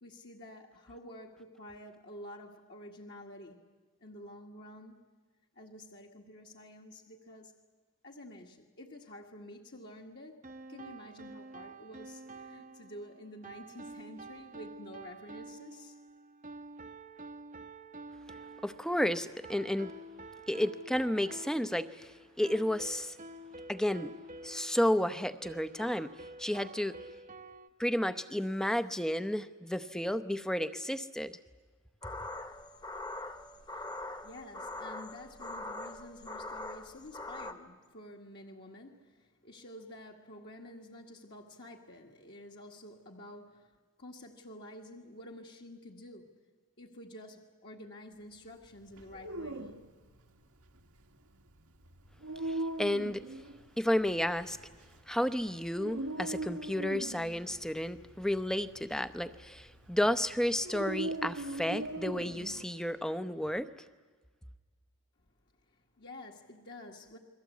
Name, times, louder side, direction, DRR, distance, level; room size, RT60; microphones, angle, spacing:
voice 1, 0.0-3.6 4.0-5.1 5.6-7.5 8.0-16.0 33.7-34.0 34.2-43.7 44.0-46.4 46.8-49.7 65.7-67.2, left 1 dB, 50° left, -1 dB, 1.9 m, -50 dB
sound 1, 10.4-27.7, right 2 dB, 35° right, 0.9 m, -49 dB
voice 2, 18.6-19.9 20.5-23.2 23.7-24.1 24.4-26.1 26.4-26.9 27.8-31.4 52.4-53.3 53.8-54.6 55.1-63.7, left 1 dB, 5° left, 11 dB, 0.8 m, -32 dB
sound 2, 32.0-37.5, left 2 dB, 20° left, 1.4 m, -42 dB
Dog, 48.9-62.6, right 2 dB, 85° right, 1.9 m, -41 dB
29.5 x 22.5 x 8.4 m, 1.4 s
head